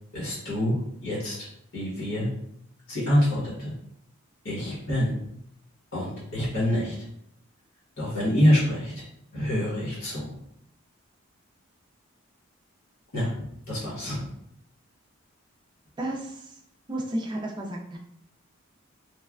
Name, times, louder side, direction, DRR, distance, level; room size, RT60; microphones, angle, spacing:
voice 1, 0.1-1.5 1.7-2.3 2.9-3.7 4.4-5.2 5.9-6.9 8.0-9.0 9.3-10.4 13.1-14.3, equal, 70° left, -6 dB, 1.1 m, -26 dB
voice 2, 16.0-16.4 16.9-18.0, right 1 dB, 20° right, -1 dB, 0.4 m, -32 dB
3.1 x 2.1 x 2.3 m, 0.72 s
head